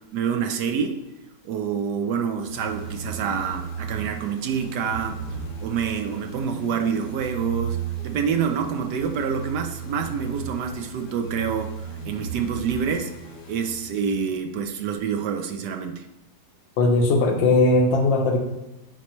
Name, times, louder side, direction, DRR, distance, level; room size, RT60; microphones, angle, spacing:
voice 1, 0.1-1.0 1.4-5.2 5.6-13.1 13.5-16.0, right 7 dB, 70° right, 6 dB, 1.1 m, -27 dB
sound 1, 2.5-14.2, right 6 dB, 35° left, 1.2 m, -35 dB
voice 2, 16.8-18.4, left 2 dB, 85° left, 3 dB, 1.6 m, -19 dB
8.7 x 4.5 x 3.0 m, 0.94 s
omnidirectional pair, 2.0 m